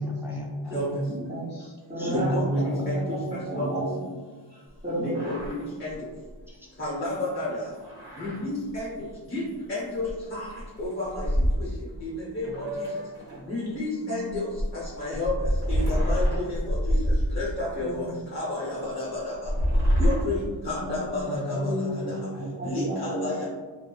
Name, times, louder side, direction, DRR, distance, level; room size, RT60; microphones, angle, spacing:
voice 1, 0.0-1.3 2.0-4.0 6.5-6.8 21.3-22.0 22.3-22.8, right 1 dB, 5° right, -3 dB, 0.4 m, -32 dB
voice 2, 1.1-4.1 4.8-5.2 14.0-14.3 17.8-18.1 20.7-21.1 21.5-23.5, right 1 dB, 20° right, -9 dB, 1.5 m, -32 dB
voice 3, 2.1-3.2 3.6-3.7 5.0-6.0 6.8-7.6 8.2-8.9 9.3-9.4 9.7-10.5 10.8-11.3 11.6-11.7 12.0-12.8 13.4-14.5 14.7-15.3 15.7-17.0 17.3-19.5 20.0-21.9 22.6-23.4, left 2 dB, 25° left, -8 dB, 0.7 m, -31 dB
sound 1, 4.8-4.9 5.0-5.6 5.9-6.0 6.3-6.4 7.8-8.4 8.7-8.8 10.0-10.1 10.5-12.0 12.4-13.5 14.3-17.8 18.4-18.5 19.3-21.2, equal, 65° right, 1.3 m, -26 dB
2.6 x 2.4 x 2.3 m, 1.4 s
wide cardioid pair, 75°, 45 cm